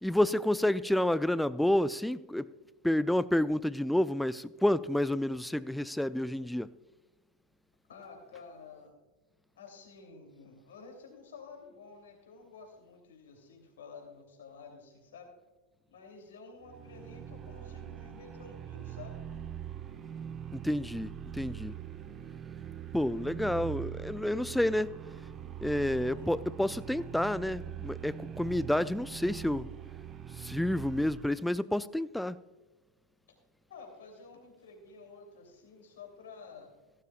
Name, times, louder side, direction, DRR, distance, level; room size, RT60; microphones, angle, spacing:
voice 1, 0.0-2.5 2.8-6.7 20.5-21.8 22.9-25.0 25.6-29.7 30.3-32.4, left 1 dB, 5° left, 0.4 m, -29 dB
voice 2, 7.9-8.9 9.6-15.3 15.9-19.2 26.0-26.3 33.7-36.7, left 4 dB, 65° left, 2.9 m, -51 dB
sound 1, 16.6-31.4, right 10 dB, 25° right, 0.8 m, -43 dB
16.0 x 12.0 x 2.4 m
figure-of-eight pair, 95°, 0 cm